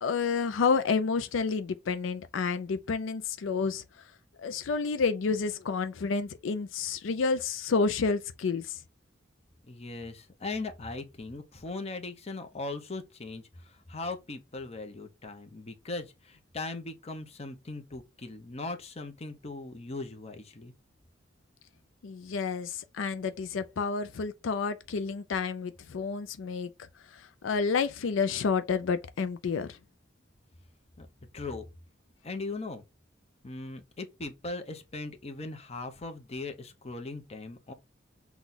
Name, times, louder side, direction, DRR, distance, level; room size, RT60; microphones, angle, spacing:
voice 1, 0.0-3.8 4.4-8.8 22.0-26.7 27.1-29.8, left 5 dB, 90° left, 0.4 m, -30 dB
voice 2, 9.7-20.7 31.0-31.1 31.3-31.7 32.2-32.8 33.4-37.7, left 3 dB, 35° left, 0.8 m, -39 dB
6.0 x 2.3 x 3.9 m
head